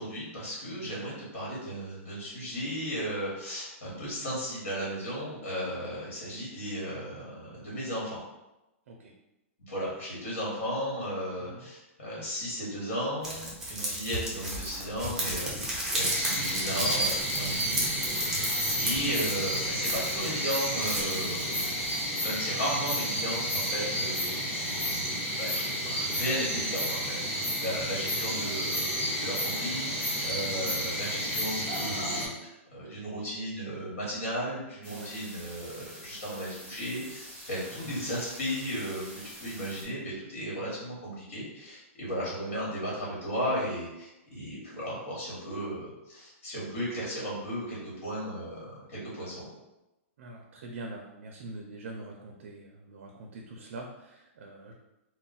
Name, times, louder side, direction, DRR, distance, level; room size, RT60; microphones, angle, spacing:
voice 1, 0.0-8.2 9.7-18.5 18.8-21.8 22.2-25.0 25.4-39.1 39.4-49.5, equal, 70° left, -6 dB, 1.3 m, -35 dB
voice 2, 0.7-1.0 5.3-5.7 8.9-9.1 11.4-11.7 13.7-14.0 15.6-16.0 17.5-17.7 23.9-24.1 26.8-27.0 30.4-30.8 34.9-35.1 37.7-38.0 40.5-40.7 50.2-54.7, right 2 dB, 65° right, 2 dB, 0.4 m, -45 dB
sound 1, 13.2-20.3 20.7-22.1, right 1 dB, 5° right, 0.5 m, -34 dB
sound 2, 16.0-32.3, equal, 50° left, 1.2 m, -31 dB
sound 3, 34.8-39.9, equal, 10° left, 1.1 m, -46 dB
2.3 x 2.1 x 3.9 m, 0.95 s
hypercardioid pair, 165°, 8 cm